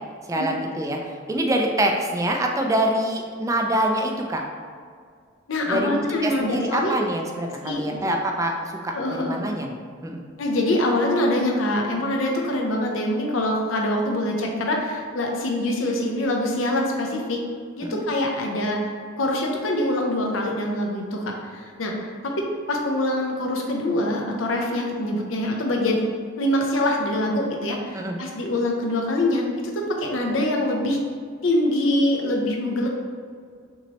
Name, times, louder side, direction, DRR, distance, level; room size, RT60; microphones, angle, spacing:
voice 1, 0.3-4.4 5.7-9.8 10.0-10.2 17.8-18.0 27.9-28.2, right 1 dB, 15° right, 2 dB, 0.4 m, -25 dB
voice 2, 5.5-6.9 7.6-8.1 8.9-9.4 10.4-17.4 17.8-18.8 19.2-21.2 21.5-21.9 22.2-26.0 26.4-31.0 31.4-32.9, left 1 dB, 80° left, 0 dB, 0.7 m, -24 dB
5.7 x 3.1 x 2.9 m, 2.1 s
head